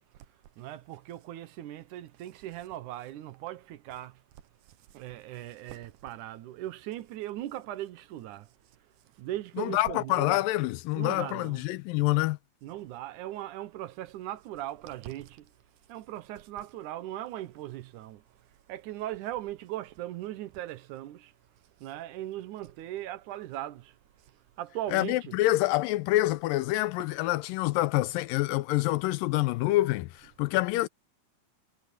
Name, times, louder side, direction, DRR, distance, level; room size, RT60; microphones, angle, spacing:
voice 1, 0.6-4.2 4.9-8.5 9.2-10.4 11.0-11.7 12.6-15.5 15.9-18.2 18.7-21.3 21.8-24.0 24.2-24.3 24.6-25.4 27.0-27.1 30.2-30.3, right 14 dB, 70° right, 2.2 m, -39 dB
voice 2, 9.6-12.4 24.9-30.9, left 17 dB, 85° left, 2.3 m, -27 dB
omnidirectional pair, 3.9 m